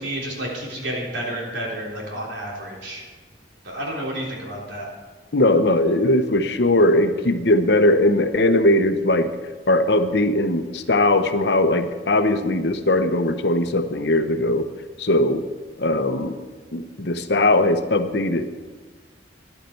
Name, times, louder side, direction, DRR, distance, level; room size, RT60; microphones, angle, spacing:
voice 1, 0.0-3.0 3.6-4.9, right 1 dB, 80° right, -3 dB, 3.6 m, -30 dB
voice 2, 5.3-9.3 9.7-14.6 15.0-15.4 15.8-16.3 16.7-18.4, left 1 dB, 65° left, 8 dB, 0.9 m, -19 dB
14.5 x 11.0 x 4.5 m, 1.4 s
head